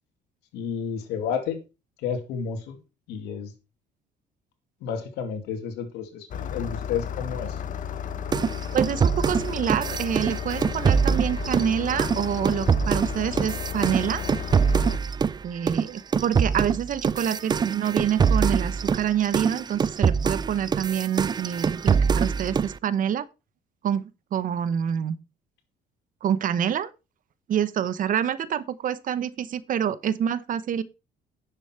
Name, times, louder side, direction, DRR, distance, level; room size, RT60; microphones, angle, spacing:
voice 1, 0.5-1.6 2.0-2.8 3.1-3.5 4.8-7.6, left 7 dB, 90° left, 2.4 m, -31 dB
Engine starting, 6.3-15.0, left 8 dB, 50° left, 1.2 m, -33 dB
sound 1, 8.3-15.4 15.7-22.8, right 6 dB, 25° right, 0.4 m, -24 dB
voice 2, 8.7-14.2 15.4-23.3 23.8-24.0 24.3-25.2 26.2-26.9 27.5-30.8, right 9 dB, 50° right, 0.9 m, -27 dB
10.5 x 6.9 x 4.4 m
cardioid pair, 110°, 17 cm